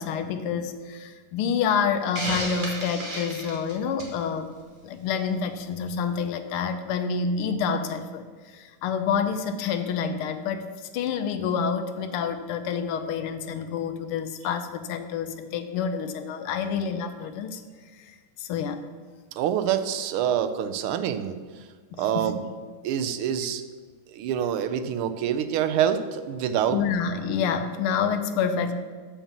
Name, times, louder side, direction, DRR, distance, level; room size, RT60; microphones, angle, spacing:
voice 1, 0.0-4.5 4.8-10.7 10.9-17.6 17.9-18.8 21.9-22.3 26.7-28.7, left 6 dB, 90° left, 8 dB, 1.6 m, -28 dB
Hiss, 2.1-4.2, right 1 dB, 25° right, 1.6 m, -32 dB
voice 2, 19.4-21.4 22.0-22.4 22.8-23.6 24.1-26.8, right 9 dB, 85° right, 10 dB, 1.5 m, -26 dB
7.2 x 5.5 x 7.2 m, 1.5 s
omnidirectional pair, 2.3 m